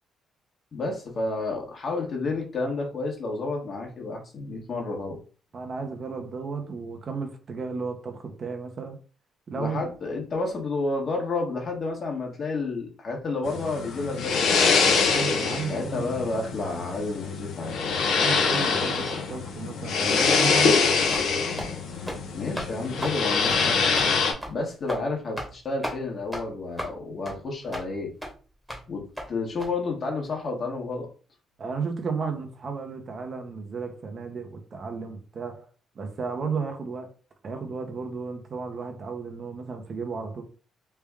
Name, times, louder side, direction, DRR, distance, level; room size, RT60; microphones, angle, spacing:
voice 1, 0.7-5.2 9.5-14.7 15.7-17.7 22.3-23.8 24.5-28.1 28.9-31.1, left 3 dB, 45° left, 1.2 m, -30 dB
voice 2, 5.5-9.0 9.5-9.8 15.1-16.1 18.1-20.8 31.6-35.7 35.9-37.1 37.4-40.4, right 5 dB, 45° right, 0.8 m, -33 dB
sound 1, 13.4-24.3, left 5 dB, 85° left, 0.8 m, -24 dB
sound 2, 20.6-20.8 21.1-21.3 21.6-21.7 22.0-22.2 22.6-22.7 23.0-23.2 23.5-23.6 24.0-24.1 24.4-24.6 24.9-25.0 25.4-25.5 25.8-26.0 26.3-26.4 26.8-26.9 27.3-27.4 27.7-27.9 28.2-28.3 28.7-28.8 29.2-29.3 29.6-29.7, equal, 5° right, 1.2 m, -34 dB
3.3 x 2.2 x 3.5 m
cardioid pair, 90°, 0 cm